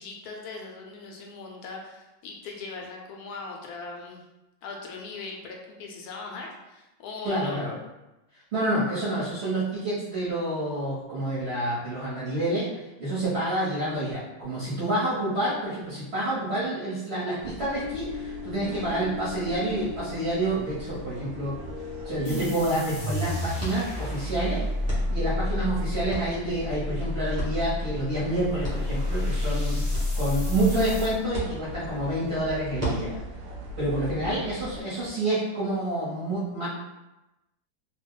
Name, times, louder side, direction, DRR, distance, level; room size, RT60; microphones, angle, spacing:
voice 1, 0.0-4.2 4.6-7.7 34.0-34.1, left 4 dB, 70° left, 0 dB, 0.9 m, -40 dB
voice 2, 7.2-7.7 8.5-12.7 13.0-21.6 22.0-24.6 25.1-33.2 33.8-36.7, right 1 dB, 45° right, -10 dB, 1.0 m, -28 dB
sound 1, 17.4-34.8, left 2 dB, 75° right, 1.0 m, -40 dB
sound 2, 22.2-31.1, left 1 dB, 45° left, 0.3 m, -30 dB
sound 3, 23.6-35.1, right 2 dB, 10° right, 0.7 m, -41 dB
2.9 x 2.3 x 3.6 m, 0.99 s
omnidirectional pair, 2.0 m